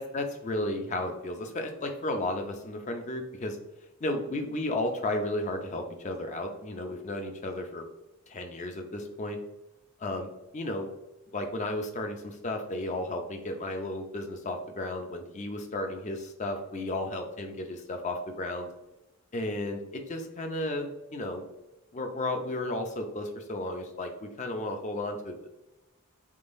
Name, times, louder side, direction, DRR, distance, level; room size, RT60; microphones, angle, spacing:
voice 1, 0.0-3.6 4.0-7.8 8.3-9.4 10.0-10.9 11.3-18.7 19.3-21.5 21.9-25.5, left 1 dB, 30° left, 5 dB, 0.5 m, -33 dB
3.7 x 3.6 x 2.5 m, 0.97 s
head